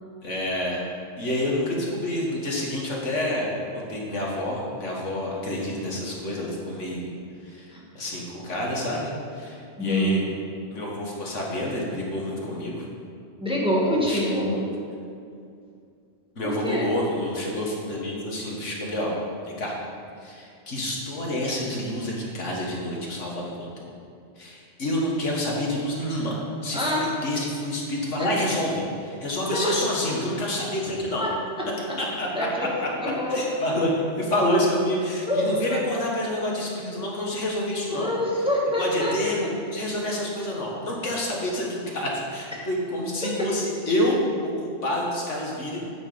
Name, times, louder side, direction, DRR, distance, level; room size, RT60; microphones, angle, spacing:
voice 1, 0.2-0.9 1.2-7.1 7.4-7.7 8.0-10.3 10.7-12.7 14.1-14.6 16.4-19.1 19.5-19.8 20.2-23.9 24.4-31.3 32.0-32.5 33.3-38.1 38.8-45.9, left 1 dB, 75° left, -3 dB, 2.1 m, -28 dB
voice 2, 9.8-10.1 13.4-14.5 16.4-16.9 26.7-27.0 28.2-28.3 29.4-29.9 31.2-31.3 31.6-31.7 32.3-32.7 33.0-33.4 35.3-35.8 37.9-39.2 39.4-39.5 43.2-43.3, left 1 dB, 5° right, -5 dB, 1.8 m, -25 dB
9.7 x 6.4 x 7.0 m, 2.4 s
omnidirectional pair, 1.3 m